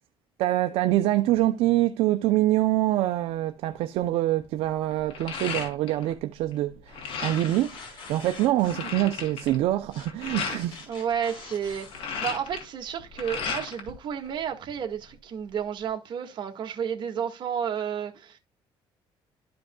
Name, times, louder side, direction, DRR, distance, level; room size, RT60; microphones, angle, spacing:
voice 1, 0.4-10.9, right 15 dB, 85° right, 0.6 m, -25 dB
sound 1, 3.7-4.0 4.4-6.2 6.4-7.6 8.1-8.2 8.4-10.6 11.7-13.9 14.3-15.1, left 6 dB, 70° left, 2.6 m, -35 dB
sound 2, 5.3-5.7 7.0-8.8 9.9-10.1 10.6-12.0, left 4 dB, 55° left, 3.8 m, -44 dB
voice 2, 10.9-18.4, right 8 dB, 50° right, 1.8 m, -31 dB
13.0 x 5.2 x 2.3 m
cardioid pair, 130°, 10 cm